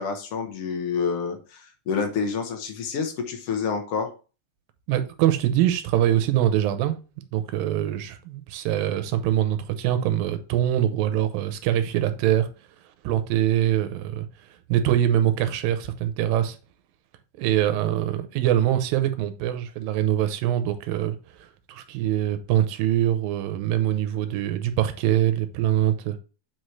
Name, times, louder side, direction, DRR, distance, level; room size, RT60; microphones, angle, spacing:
voice 1, 0.0-4.1, left 5 dB, 65° left, 1.5 m, -28 dB
voice 2, 4.9-7.0 7.3-12.5 13.0-14.3 14.7-16.6 17.4-26.2, right 12 dB, 90° right, 2.6 m, -23 dB
7.9 x 4.3 x 3.2 m
omnidirectional pair, 4.0 m